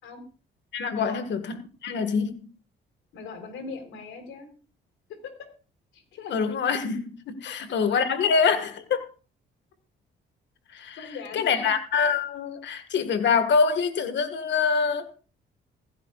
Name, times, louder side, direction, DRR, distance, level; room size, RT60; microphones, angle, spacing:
voice 1, 0.7-1.6 1.8-2.5 6.3-9.1 10.7-11.0 11.3-15.1, left 5 dB, 65° left, 1.7 m, -25 dB
voice 2, 3.1-4.5 5.2-5.5 5.9-6.4 7.4-7.5 11.0-11.7, left 4 dB, 85° left, 3.7 m, -40 dB
16.5 x 15.5 x 2.4 m
cardioid pair, 90°, 20 cm